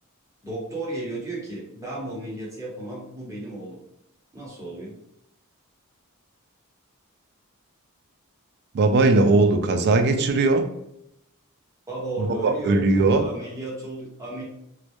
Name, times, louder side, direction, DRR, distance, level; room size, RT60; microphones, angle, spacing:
voice 1, 0.4-3.8 4.3-5.0 11.9-14.4, right 2 dB, 15° right, -5 dB, 0.8 m, -34 dB
voice 2, 8.7-10.7 12.4-13.2, right 3 dB, 50° right, 7 dB, 0.3 m, -19 dB
2.2 x 2.0 x 2.8 m, 0.78 s
head